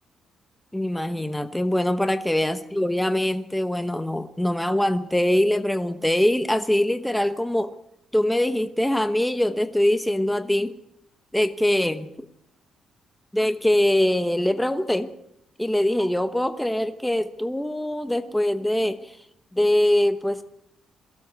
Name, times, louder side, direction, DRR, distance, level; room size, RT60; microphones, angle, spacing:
voice 1, 0.7-7.7 8.1-10.7 11.3-12.1 13.3-15.1 15.6-19.2 19.5-20.4, left 1 dB, 5° left, 9 dB, 1.1 m, -23 dB
22.0 x 16.0 x 8.1 m, 0.78 s
cardioid pair, 160°, 0 cm